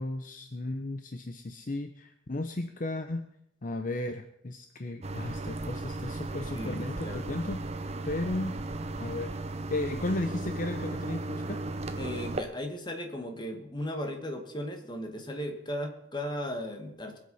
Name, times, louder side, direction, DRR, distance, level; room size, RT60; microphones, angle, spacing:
voice 1, 0.0-3.3 3.6-8.6 9.0-9.4 9.7-11.6, left 2 dB, 45° left, 8 dB, 0.8 m, -35 dB
sound 1, 5.0-12.4, right 2 dB, 35° right, 0.9 m, -36 dB
voice 2, 6.5-7.6 12.0-17.2, equal, 25° left, 4 dB, 2.0 m, -36 dB
21.5 x 8.0 x 5.6 m, 0.76 s
head